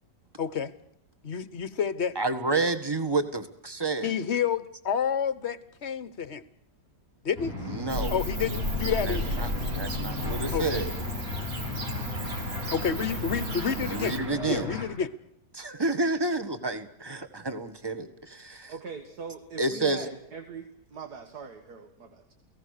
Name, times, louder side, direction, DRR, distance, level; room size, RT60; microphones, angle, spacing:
voice 1, 0.4-0.7 1.2-2.2 4.0-6.4 7.2-7.5 8.1-9.3 10.5-10.8 12.7-14.2 14.5-15.1, left 7 dB, 45° left, 15 dB, 1.2 m, -29 dB
voice 2, 2.1-4.1 7.6-8.1 9.0-9.5 9.8-10.9 13.8-14.7 15.5-18.7 19.6-20.1, right 3 dB, 15° right, 10 dB, 1.5 m, -30 dB
sound 1, 7.4-14.9, left 3 dB, 35° right, 6.9 m, -35 dB
Bird / Cricket, 7.9-14.2, equal, 80° right, 3.3 m, -34 dB
voice 3, 18.7-22.3, right 5 dB, 65° right, 6 dB, 2.2 m, -41 dB
30.0 x 18.5 x 6.6 m, 0.77 s
omnidirectional pair, 1.8 m